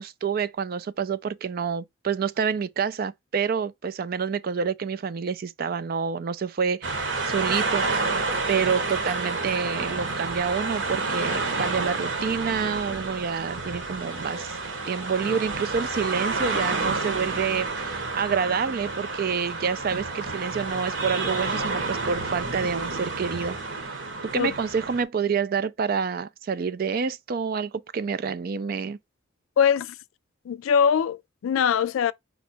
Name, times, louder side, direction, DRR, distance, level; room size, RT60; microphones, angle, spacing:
voice 1, 0.0-14.5 14.9-29.0, right 6 dB, 45° right, 0.4 m, -28 dB
sound 1, 6.8-25.0, right 3 dB, 65° right, 1.1 m, -29 dB
voice 2, 29.6-29.9 30.5-32.1, left 7 dB, 80° left, 0.3 m, -22 dB
5.1 x 2.3 x 4.2 m
head